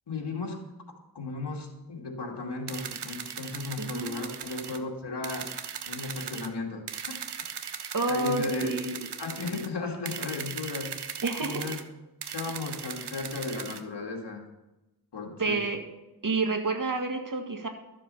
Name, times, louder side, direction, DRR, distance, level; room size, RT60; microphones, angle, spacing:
voice 1, 0.1-0.6 1.1-5.6 5.9-7.2 8.1-8.7 9.2-10.9 11.4-11.8 12.3-14.4 15.1-15.6, left 3 dB, 85° left, 0 dB, 2.4 m, -35 dB
sound 1, 2.7-4.8 5.2-6.5 6.9-9.7 10.0-11.8 12.2-13.8, right 7 dB, 80° right, 0.9 m, -38 dB
voice 2, 3.8-4.1 7.9-9.1 11.2-11.7 15.4-15.8 16.2-17.7, right 3 dB, 50° right, 4 dB, 2.0 m, -29 dB
13.0 x 7.5 x 5.6 m, 1.0 s
cardioid pair, 50°, 40 cm